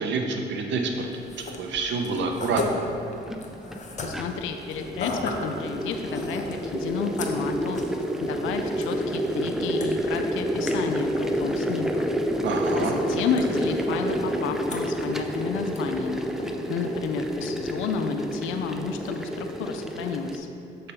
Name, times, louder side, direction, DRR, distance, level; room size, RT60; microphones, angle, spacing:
voice 1, 0.0-2.8 12.4-13.0, right 4 dB, 65° right, 4 dB, 0.8 m, -28 dB
sound 1, 1.1-17.7, left 2 dB, 35° left, 0.8 m, -39 dB
sound 2, 1.8-1.9 2.9-20.4, equal, ahead, 0.4 m, -29 dB
voice 2, 4.0-7.8 8.2-12.1 12.3-12.4 12.8-20.5, left 5 dB, 85° left, 6 dB, 0.4 m, -31 dB
6.7 x 3.4 x 5.5 m, 2.8 s
cardioid pair, 90°, 20 cm